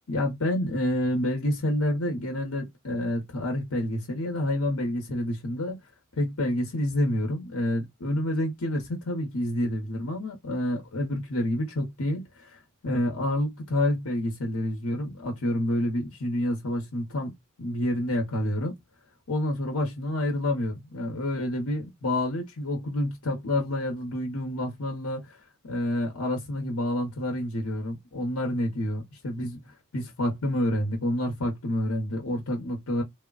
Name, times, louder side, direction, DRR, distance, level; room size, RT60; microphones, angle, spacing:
voice 1, 0.1-5.8 6.2-18.7 19.3-25.3 25.6-33.0, left 1 dB, 85° left, 0.9 m, -28 dB
3.3 x 2.1 x 2.3 m
head